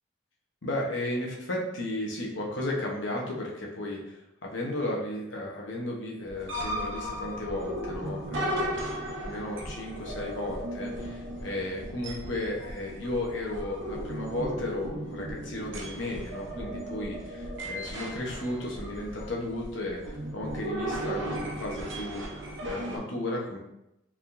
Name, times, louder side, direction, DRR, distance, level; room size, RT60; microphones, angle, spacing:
voice 1, 0.6-8.8 9.2-23.6, left 1 dB, 70° left, -1 dB, 0.9 m, -34 dB
sound 1, 6.3-23.0, equal, 70° right, 0.8 m, -36 dB
4.6 x 3.6 x 2.6 m, 0.86 s
head